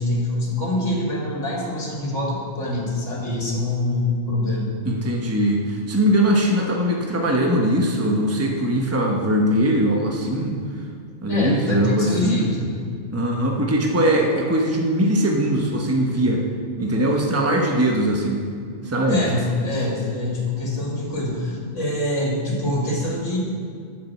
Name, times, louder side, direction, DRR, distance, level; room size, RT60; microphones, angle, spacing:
voice 1, 0.0-4.7 11.3-12.7 19.1-23.4, left 1 dB, 70° left, -3 dB, 2.5 m, -25 dB
voice 2, 4.8-10.6 11.2-12.5 13.1-16.4 16.8-18.4 18.8-19.2, right 1 dB, 10° right, 0 dB, 1.0 m, -21 dB
8.8 x 6.7 x 7.4 m, 2.3 s
omnidirectional pair, 1.3 m